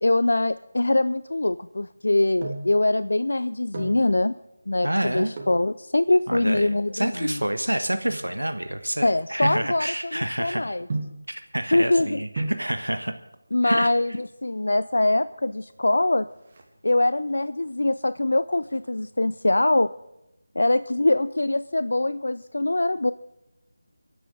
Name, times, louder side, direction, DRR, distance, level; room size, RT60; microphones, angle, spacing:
voice 1, 0.0-4.3 4.7-7.4 9.0-10.9 11.7-12.2 13.5-16.3 16.8-19.9 20.6-23.1, left 2 dB, 70° left, 15 dB, 0.5 m, -23 dB
sound 1, 2.0-2.8 3.5-4.1 5.3-5.7 6.4-8.8 9.4-9.8 10.9-11.3 12.1-12.2 12.4-12.7 13.8-14.4 14.7-14.8 15.0-15.1 15.5-15.9 16.2-17.2 17.7-18.1 18.5-19.6 19.9-20.0, right 2 dB, 35° right, 3.0 m, -35 dB
voice 2, 4.8-5.3 6.3-10.6 11.3-13.1 13.6-13.9, right 1 dB, 90° right, 8 dB, 1.3 m, -28 dB
25.0 x 11.0 x 3.8 m, 0.89 s
figure-of-eight pair, 160°, 0 cm